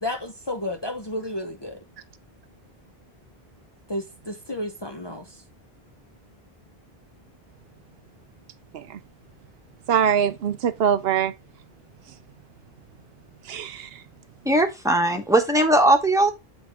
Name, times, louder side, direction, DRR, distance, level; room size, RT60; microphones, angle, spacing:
voice 1, 0.0-1.8 3.9-5.4, left 1 dB, 30° left, 0.7 m, -32 dB
voice 2, 9.9-11.3 13.4-14.0, right 8 dB, 75° right, 0.8 m, -23 dB
voice 3, 14.4-16.3, right 1 dB, 5° right, 1.1 m, -19 dB
7.4 x 3.6 x 4.6 m
omnidirectional pair, 1.0 m